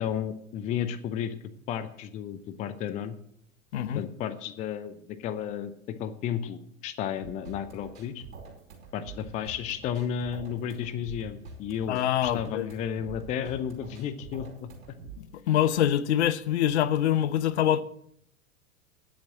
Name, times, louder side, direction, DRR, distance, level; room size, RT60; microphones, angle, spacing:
voice 1, 0.0-1.4 1.7-3.2 4.0-5.7 6.0-8.2 8.9-15.0, left 9 dB, 20° left, 0.5 m, -33 dB
voice 2, 3.7-4.0 11.9-12.7 15.2-17.8, left 11 dB, 55° left, 0.8 m, -25 dB
sound 1, 7.2-15.2, right 4 dB, 65° right, 5.0 m, -46 dB
10.5 x 7.6 x 7.4 m
figure-of-eight pair, 95°, 41 cm